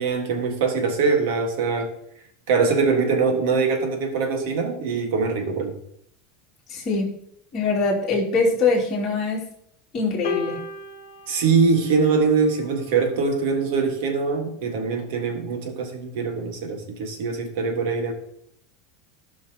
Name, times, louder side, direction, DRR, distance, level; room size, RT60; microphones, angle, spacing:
voice 1, 0.0-1.9 2.5-5.7 11.3-18.1, right 4 dB, 70° right, 5 dB, 1.6 m, -23 dB
voice 2, 6.7-7.1 7.5-9.5 9.9-10.6, left 3 dB, 25° left, -5 dB, 2.6 m, -23 dB
sound 1, 10.2-12.7 13.7-13.9, left 5 dB, 85° left, 1.1 m, -35 dB
15.5 x 5.7 x 2.9 m, 0.71 s
supercardioid pair, 170°, 0 cm